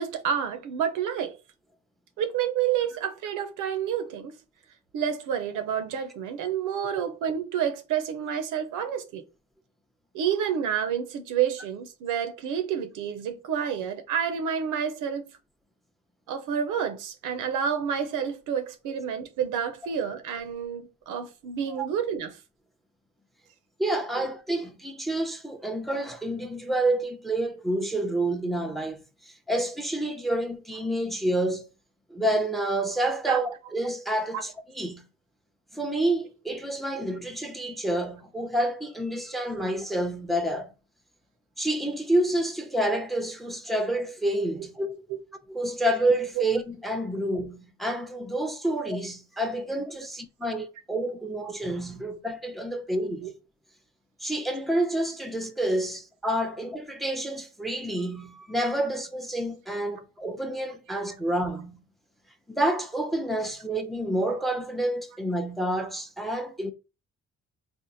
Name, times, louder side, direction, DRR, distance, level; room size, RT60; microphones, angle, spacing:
voice 1, 0.0-1.4 2.2-4.3 4.9-9.2 10.1-15.3 16.3-22.4 24.2-24.3 33.3-33.4 34.3-34.4 45.1-45.2 53.2-53.3, right 8 dB, 85° right, 0.7 m, -29 dB
voice 2, 23.8-31.6 32.1-35.0 35.7-40.7 41.6-45.1 45.5-53.3 54.2-61.8 62.5-66.7, right 1 dB, ahead, 0.6 m, -28 dB
3.5 x 2.0 x 4.0 m
cardioid pair, 90°, 30 cm